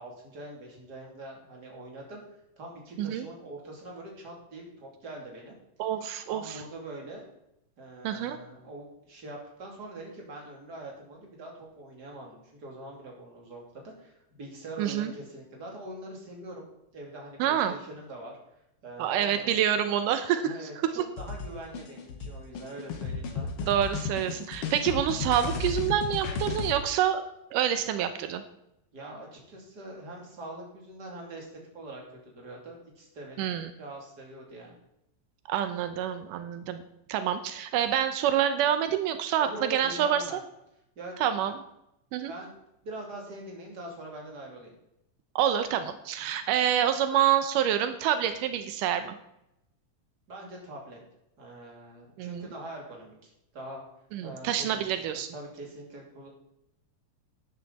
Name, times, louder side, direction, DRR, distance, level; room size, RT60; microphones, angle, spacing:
voice 1, 0.0-2.2 2.6-5.5 6.3-7.2 7.8-16.6 16.9-18.3 18.8-19.5 20.4-23.7 28.9-34.8 39.4-40.4 41.0-41.1 42.3-42.6 42.8-44.7 46.2-46.4 50.3-51.0 51.4-53.8 54.2-56.3, right 1 dB, 30° right, -1 dB, 3.1 m, -43 dB
voice 2, 5.8-6.6 8.0-8.4 14.8-15.1 17.4-17.7 19.0-20.6 20.8-20.9 23.7-27.2 27.5-28.4 33.4-33.7 35.5-36.8 37.1-40.4 41.2-41.6 42.1-42.3 45.4-49.2 52.2-52.5 54.1-55.3, right 10 dB, 85° right, 9 dB, 2.3 m, -27 dB
sound 1, 21.2-26.7, left 5 dB, 55° left, 1.9 m, -34 dB
12.5 x 10.0 x 4.1 m, 0.83 s
omnidirectional pair, 3.7 m